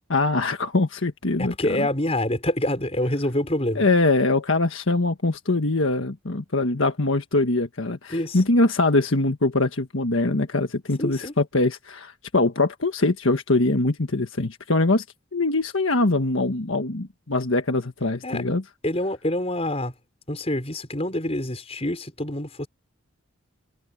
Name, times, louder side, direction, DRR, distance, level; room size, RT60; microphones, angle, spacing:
voice 1, 0.1-1.9 3.7-15.0 15.3-18.6, left 2 dB, 75° left, 1.5 m, -23 dB
voice 2, 1.4-3.9 8.1-8.4 11.0-11.3 18.2-18.4 18.8-19.9 20.3-22.7, left 1 dB, 30° left, 5.6 m, -26 dB
head